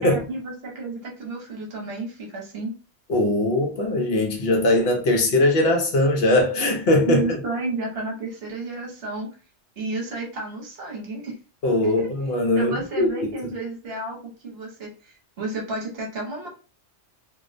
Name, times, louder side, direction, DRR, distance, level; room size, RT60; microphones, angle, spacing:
voice 1, 0.0-2.7 7.1-9.3 9.8-11.3 11.8-12.1 12.6-14.2 14.4-16.5, right 3 dB, 60° right, 1.0 m, -31 dB
voice 2, 3.1-7.2 11.6-13.1, left 1 dB, 65° left, 0.8 m, -20 dB
2.4 x 2.1 x 2.5 m
omnidirectional pair, 1.2 m